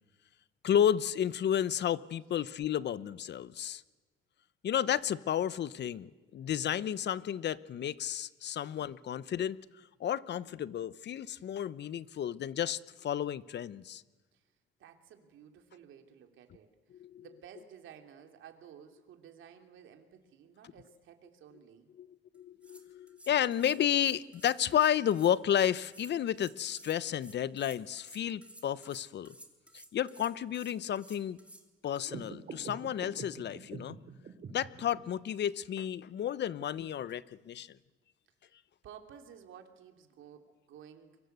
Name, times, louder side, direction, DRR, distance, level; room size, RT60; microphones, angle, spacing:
voice 1, 0.6-3.8 4.6-9.6 10.0-14.0 16.9-17.2 22.0-29.3 29.9-31.4 31.8-34.0 34.5-37.7, left 10 dB, 60° left, 18 dB, 0.9 m, -32 dB
voice 2, 14.8-21.9 38.8-41.2, right 8 dB, 80° right, 5 dB, 3.2 m, -54 dB
sound 1, 22.3-22.4 22.6-31.6, right 1 dB, 5° right, 3.4 m, -55 dB
sound 2, 32.0-35.0, right 6 dB, 50° right, 3.3 m, -45 dB
29.5 x 23.5 x 8.1 m, 1.3 s
cardioid pair, 90°, 20 cm